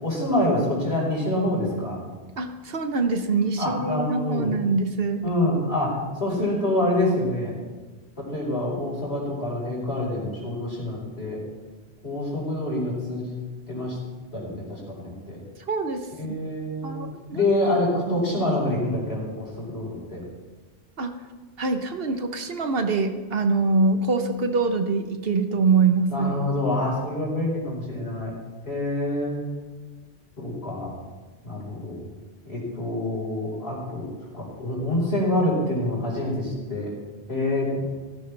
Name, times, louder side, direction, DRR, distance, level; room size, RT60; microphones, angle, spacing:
voice 1, 0.0-2.0 3.6-4.5 5.2-7.5 8.3-11.4 12.0-13.3 13.7-14.0 14.3-15.4 16.2-17.0 17.3-20.2 26.1-28.3 28.6-29.5 30.4-30.9 31.4-32.0 32.4-34.0 34.3-36.9 37.3-37.9, left 1 dB, 70° left, -4 dB, 5.0 m, -26 dB
voice 2, 2.4-5.2 15.7-16.1 16.8-17.4 18.1-18.2 21.0-21.1 21.6-26.3, right 4 dB, 60° right, 7 dB, 1.2 m, -24 dB
15.5 x 15.0 x 3.4 m, 1.3 s
omnidirectional pair, 1.1 m